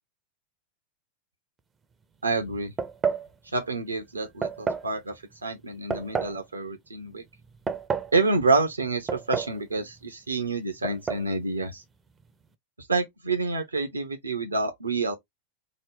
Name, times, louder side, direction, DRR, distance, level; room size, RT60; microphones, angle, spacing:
voice 1, 2.2-2.7 3.5-5.1 5.4-7.2 8.1-11.8 12.9-15.1, right 3 dB, 75° right, 0.6 m, -28 dB
sound 1, 2.8-3.3 4.4-4.9 5.9-6.4 7.4-8.1 9.1-9.6 9.9-10.0 10.8-11.3, right 5 dB, 20° right, 0.5 m, -29 dB
3.8 x 2.1 x 3.3 m
figure-of-eight pair, 90°, 0 cm